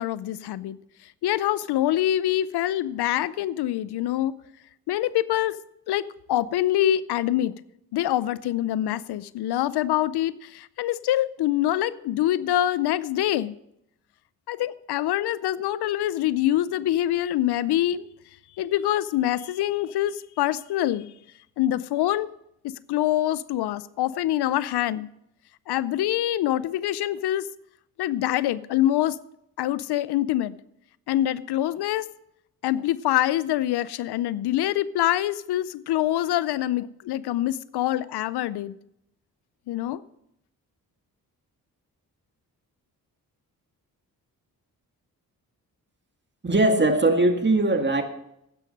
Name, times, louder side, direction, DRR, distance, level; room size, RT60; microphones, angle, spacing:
voice 1, 0.0-4.4 4.9-5.6 5.9-7.5 7.9-13.6 14.5-18.1 18.6-21.1 21.6-22.3 22.6-25.1 25.7-27.5 28.0-29.2 29.6-30.6 31.1-32.1 32.6-38.7 39.7-40.0, left 13 dB, 80° left, 18 dB, 0.5 m, -25 dB
voice 2, 46.4-48.0, right 2 dB, 30° right, 5 dB, 2.0 m, -20 dB
11.5 x 9.2 x 5.3 m, 0.78 s
cardioid pair, 55°, 39 cm